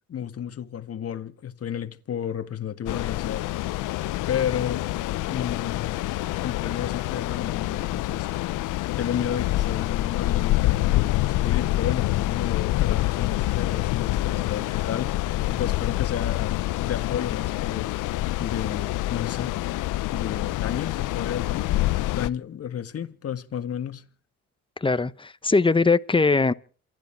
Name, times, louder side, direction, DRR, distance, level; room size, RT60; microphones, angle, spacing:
voice 1, 0.1-3.5 4.3-4.8 5.3-6.0 6.3-8.3 9.0-18.0 18.4-24.0, left 9 dB, 50° left, 1.8 m, -32 dB
sound 1, 2.9-22.3, left 16 dB, 90° left, 0.7 m, -26 dB
voice 2, 24.8-26.5, left 3 dB, 15° left, 1.0 m, -21 dB
28.0 x 11.0 x 4.7 m
cardioid pair, 90°, 30 cm